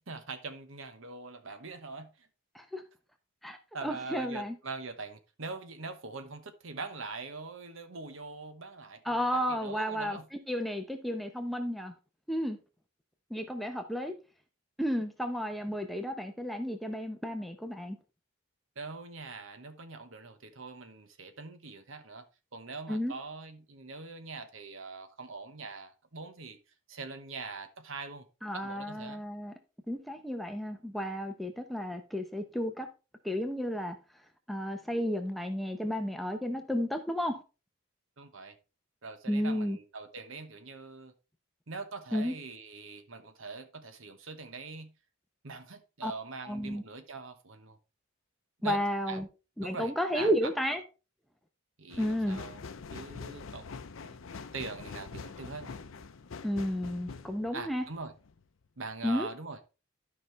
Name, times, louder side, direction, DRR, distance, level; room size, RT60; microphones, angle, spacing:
voice 1, 0.0-2.3 3.7-10.3 18.8-22.2 22.5-26.6 26.9-28.3 28.5-29.2 38.2-38.6 39.0-41.1 41.7-44.9 45.4-47.8 48.6-48.8 49.1-49.2 49.6-50.3 51.8-52.6 52.9-53.7 54.0-54.2 54.5-55.8 57.5-58.1 58.8-59.8, right 4 dB, 65° right, 1.1 m, -43 dB
voice 2, 3.4-4.5 9.0-11.9 12.3-12.6 13.3-14.1 14.8-18.0 22.9-23.1 28.4-29.5 29.9-32.9 33.2-34.0 34.5-37.4 39.3-39.8 42.1-42.3 46.0-46.1 46.5-46.8 48.6-49.3 49.6-50.8 52.0-52.4 56.4-57.8 59.0-59.3, equal, ahead, 0.8 m, -32 dB
sound 1, 51.9-58.4 58.9-59.0, left 4 dB, 70° left, 0.6 m, -45 dB
12.0 x 5.5 x 3.2 m
head